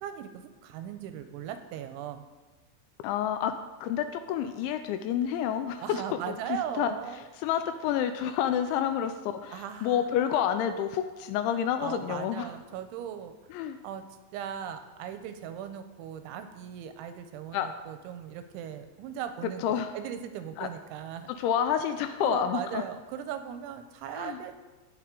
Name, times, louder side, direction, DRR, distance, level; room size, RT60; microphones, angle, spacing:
voice 1, 0.0-2.3 5.8-7.3 9.5-10.2 11.8-13.5 13.8-14.0 14.3-21.3 22.2-24.6, right 9 dB, 85° right, 8 dB, 2.9 m, -38 dB
voice 2, 3.0-6.9 7.4-12.5 13.5-13.8 17.5-17.7 19.6-19.9 20.6-20.7 21.4-22.8 24.2-24.4, left 9 dB, 85° left, 8 dB, 2.7 m, -29 dB
17.5 x 6.5 x 3.8 m, 1.2 s
omnidirectional pair, 5.6 m